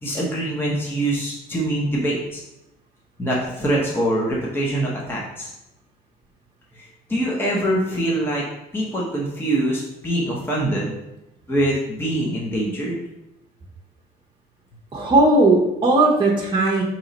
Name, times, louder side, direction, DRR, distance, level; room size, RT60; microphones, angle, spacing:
voice 1, 0.0-2.4 3.2-5.5 6.7-8.4 8.7-10.9 11.5-13.0, right 1 dB, 15° left, -4 dB, 0.8 m, -24 dB
voice 2, 14.9-16.8, right 2 dB, 30° right, -3 dB, 0.7 m, -17 dB
3.9 x 3.0 x 4.0 m, 0.90 s
cardioid pair, 110°, 17 cm